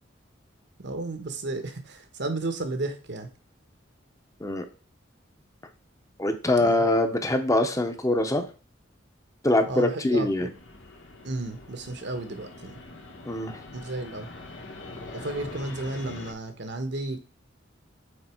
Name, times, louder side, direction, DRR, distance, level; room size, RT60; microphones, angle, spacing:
voice 1, 0.8-3.3 6.6-6.8 9.7-10.5 11.2-12.8 13.7-14.3 15.1-17.2, right 2 dB, 65° right, 7 dB, 1.2 m, -33 dB
voice 2, 6.2-8.5 9.4-10.5 13.2-13.6, left 1 dB, 15° left, 7 dB, 0.9 m, -23 dB
Fixed-wing aircraft airplane, 10.5-16.3, left 2 dB, 80° left, 1.2 m, -43 dB
6.6 x 4.5 x 4.5 m, 0.35 s
head